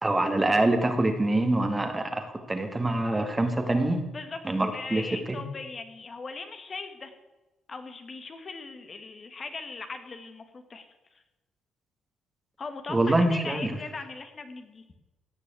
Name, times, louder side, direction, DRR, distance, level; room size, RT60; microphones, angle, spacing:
voice 1, 0.0-4.0 4.4-5.0 5.3-5.4 12.9-13.7, right 2 dB, 20° right, 6 dB, 2.0 m, -25 dB
voice 2, 4.1-7.1 7.7-11.2 12.6-14.8, left 4 dB, 40° left, 7 dB, 1.8 m, -40 dB
16.0 x 6.2 x 9.0 m, 1.1 s
cardioid pair, 90°, 0 cm